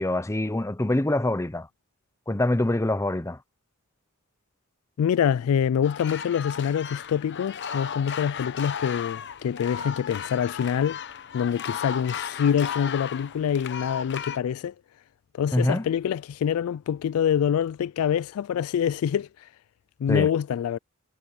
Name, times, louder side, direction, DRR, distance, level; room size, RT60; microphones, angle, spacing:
voice 1, 0.0-1.7 2.3-3.4 15.5-15.8 20.1-20.3, left 1 dB, 15° left, 0.7 m, -25 dB
voice 2, 5.0-11.0 11.3-14.7 15.3-19.5 20.0-20.8, left 8 dB, 70° left, 0.3 m, -25 dB
sound 1, 5.8-14.4, left 7 dB, 55° left, 0.9 m, -35 dB
head